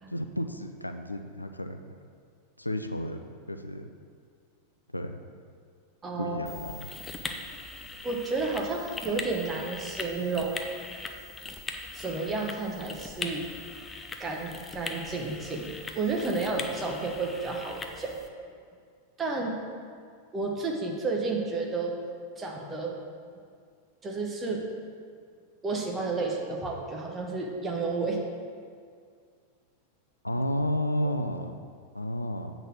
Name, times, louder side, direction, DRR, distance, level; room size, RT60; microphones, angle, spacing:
voice 1, 0.1-2.0 2.6-3.2 3.5-3.9 4.9-5.2 6.2-6.9 30.2-31.6 31.9-32.5, equal, 85° left, 7 dB, 0.4 m, -32 dB
voice 2, 6.0-6.6 8.0-10.7 11.4-11.5 11.9-13.5 14.2-18.2 19.2-19.6 20.3-22.0 22.4-23.0 24.0-24.6 25.6-28.2, right 3 dB, 20° right, 0 dB, 1.1 m, -31 dB
sound 1, 6.5-18.3, left 3 dB, 15° left, 0.6 m, -40 dB
8.0 x 4.0 x 6.2 m, 2.1 s
figure-of-eight pair, 90°, 0 cm